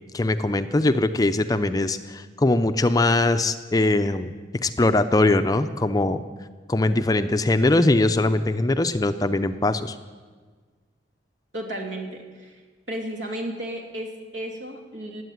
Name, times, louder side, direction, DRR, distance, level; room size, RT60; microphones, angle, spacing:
voice 1, 0.1-4.3 4.6-6.2 6.7-10.0, left 2 dB, 20° left, 10 dB, 0.5 m, -21 dB
voice 2, 11.5-12.6 12.9-15.2, right 1 dB, 75° right, 1 dB, 2.7 m, -33 dB
17.5 x 8.3 x 9.4 m, 1.5 s
head